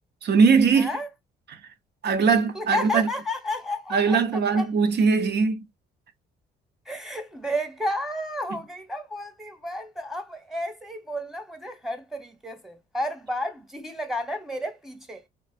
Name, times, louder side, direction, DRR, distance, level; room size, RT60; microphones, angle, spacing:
voice 1, 0.2-0.9 1.5-1.6 2.0-3.1 3.9-5.6 8.5-8.6, right 5 dB, 60° right, 0.8 m, -21 dB
voice 2, 0.8-1.1 2.3-4.2 4.5-4.7 6.9-15.2, left 1 dB, ahead, 1.1 m, -32 dB
4.3 x 2.3 x 2.4 m
cardioid pair, 90°, 20 cm